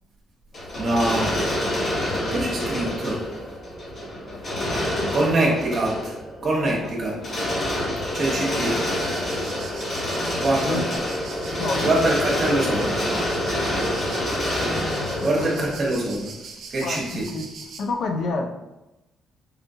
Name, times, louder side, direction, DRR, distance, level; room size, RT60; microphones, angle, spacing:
sound 1, 0.5-16.1, left 1 dB, 45° left, 1.2 m, -27 dB
voice 1, 0.8-1.3 2.3-3.2 5.1-6.1 6.4-7.2 8.1-8.8 10.4-10.8 11.8-13.0 15.2-16.3 16.7-17.2, right 2 dB, 45° right, -2 dB, 1.0 m, -24 dB
voice 2, 4.3-5.6 6.5-6.9 10.7-10.8 11.6-11.9 14.9-15.7 16.8-17.5 17.8-18.5, left 3 dB, 65° left, 4 dB, 0.4 m, -30 dB
sound 2, 8.6-17.8, right 5 dB, 70° right, 0.4 m, -41 dB
4.0 x 2.2 x 2.7 m, 1.0 s
cardioid pair, 90°, 0 cm